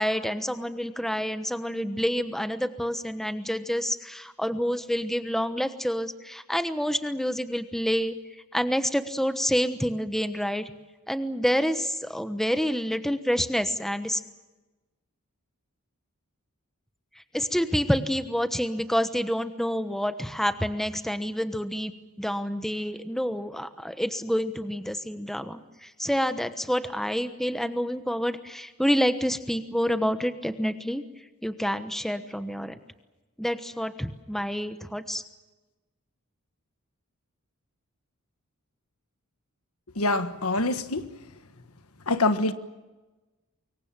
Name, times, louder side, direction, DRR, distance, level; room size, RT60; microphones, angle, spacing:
voice 1, 0.0-8.1 8.5-10.6 11.1-14.2 17.3-21.9 22.2-31.0 31.4-32.8 33.4-35.2, equal, ahead, 1.1 m, -28 dB
voice 2, 40.0-41.1 42.1-42.5, left 2 dB, 75° left, 1.5 m, -25 dB
25.5 x 22.5 x 7.4 m
head